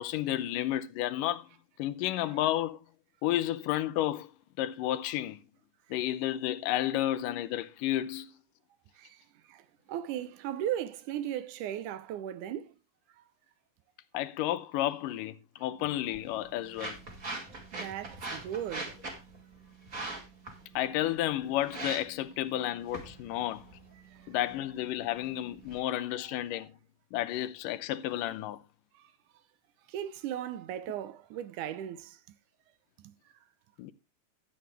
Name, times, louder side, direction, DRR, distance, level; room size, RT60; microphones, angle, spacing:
voice 1, 0.0-1.5 1.8-2.8 3.2-4.3 4.6-5.4 5.9-8.3 14.1-17.0 20.8-23.6 24.3-26.7 27.1-28.6 33.8-33.9, left 13 dB, 85° left, 2.4 m, -31 dB
voice 2, 9.0-12.8 13.2-13.3 17.7-19.0 24.0-24.3 26.2-26.4 28.9-29.1 29.9-32.4 33.0-33.1, right 11 dB, 75° right, 2.1 m, -37 dB
sound 1, 15.8-25.8, right 2 dB, 25° right, 2.6 m, -43 dB
12.5 x 8.9 x 3.3 m
omnidirectional pair, 3.8 m